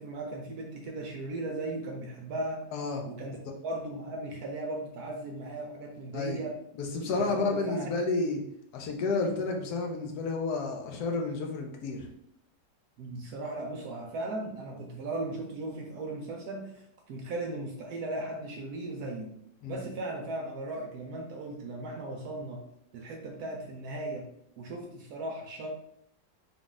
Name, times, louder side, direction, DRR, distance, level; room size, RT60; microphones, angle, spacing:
voice 1, 0.0-2.6 3.1-3.4 3.6-6.6 7.0-7.9 13.0-19.3 19.7-22.6 22.9-24.2 24.6-25.7, right 2 dB, 70° right, 1 dB, 1.0 m, -37 dB
voice 2, 2.7-3.0 6.1-6.4 6.8-8.4 8.7-12.1 19.6-19.8, left 3 dB, 65° left, 2 dB, 1.1 m, -31 dB
3.6 x 2.4 x 3.9 m, 0.72 s
omnidirectional pair, 1.9 m